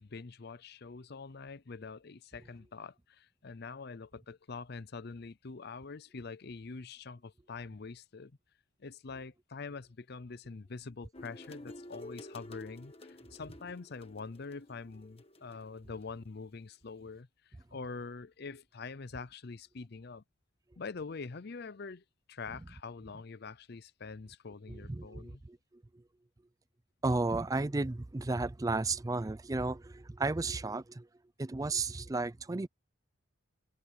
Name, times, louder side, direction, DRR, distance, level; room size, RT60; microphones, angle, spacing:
voice 1, 0.0-8.3 8.8-20.2 20.8-25.4, left 4 dB, 55° left, 0.6 m, -45 dB
sound 1, 11.1-16.1, left 1 dB, 30° left, 1.7 m, -51 dB
voice 2, 24.7-25.6 27.0-31.1 31.4-32.7, right 3 dB, 15° right, 0.4 m, -33 dB
head